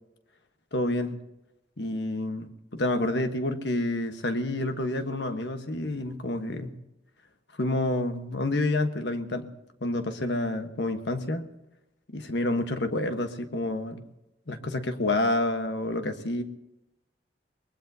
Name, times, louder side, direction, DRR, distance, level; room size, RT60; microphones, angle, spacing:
voice 1, 0.7-1.2 1.8-6.7 7.6-9.5 9.8-11.4 12.1-14.0 14.5-16.4, left 2 dB, 70° left, 7 dB, 1.3 m, -28 dB
24.0 x 20.5 x 2.8 m, 0.93 s
head